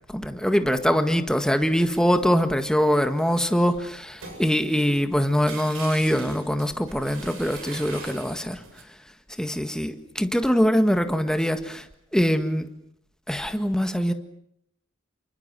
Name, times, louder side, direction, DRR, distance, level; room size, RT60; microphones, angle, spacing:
voice 1, 0.1-8.6 9.4-11.9 12.1-12.7 13.3-14.1, equal, 5° left, 1.8 m, -23 dB
sound 1, 1.8-8.8, right 4 dB, 85° right, 7.8 m, -44 dB
29.5 x 24.0 x 7.7 m
head